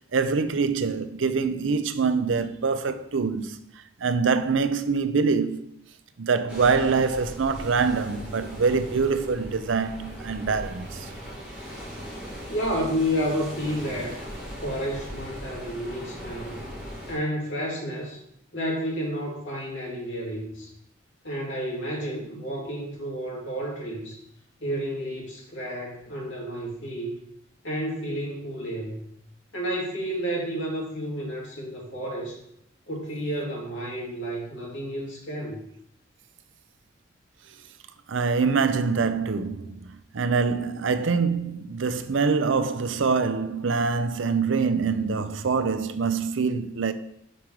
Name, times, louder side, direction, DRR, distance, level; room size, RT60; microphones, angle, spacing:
voice 1, 0.1-3.6 4.0-5.6 6.2-11.1 38.1-46.9, right 5 dB, 80° right, 0.5 m, -25 dB
sound 1, 6.5-17.2, equal, 5° right, 2.4 m, -39 dB
voice 2, 12.5-14.2 14.6-16.6 17.1-18.2 18.5-20.7 21.2-24.2 24.6-27.1 27.6-29.1 29.5-32.4 32.9-35.6, equal, 70° left, 2.5 m, -31 dB
5.3 x 4.6 x 6.2 m
head